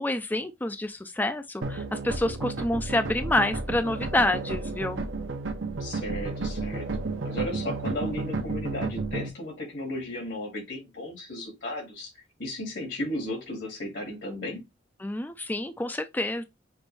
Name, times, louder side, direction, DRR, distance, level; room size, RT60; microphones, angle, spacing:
voice 1, 0.0-5.0 15.0-16.4, left 1 dB, 10° left, 0.4 m, -28 dB
sound 1, 1.6-9.3, right 3 dB, 85° right, 0.9 m, -32 dB
voice 2, 5.8-14.6, left 1 dB, 70° left, 2.1 m, -35 dB
6.1 x 2.6 x 3.3 m
head